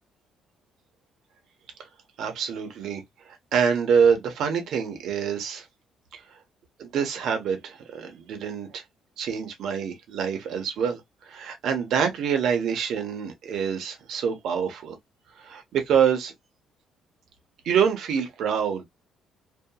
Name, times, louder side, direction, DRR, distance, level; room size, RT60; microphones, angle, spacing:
voice 1, 2.2-3.0 3.5-5.6 6.8-8.8 9.2-15.0 15.4-16.3 17.6-18.8, right 7 dB, 70° right, 0.9 m, -26 dB
2.8 x 2.5 x 2.3 m
cardioid pair, 120°, 0 cm